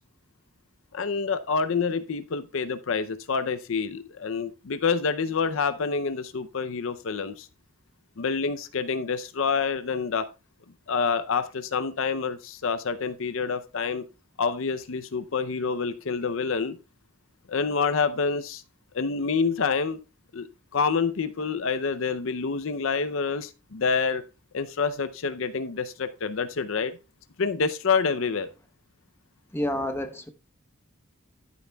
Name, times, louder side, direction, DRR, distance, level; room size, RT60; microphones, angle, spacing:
voice 1, 0.9-7.5 8.2-10.3 10.9-14.0 14.4-16.8 17.5-18.6 18.9-20.0 20.3-20.5 20.7-24.2 24.5-26.9 27.4-28.5, left 5 dB, 65° left, 0.6 m, -27 dB
voice 2, 29.5-30.3, left 1 dB, 10° left, 0.9 m, -29 dB
13.0 x 8.4 x 2.3 m
head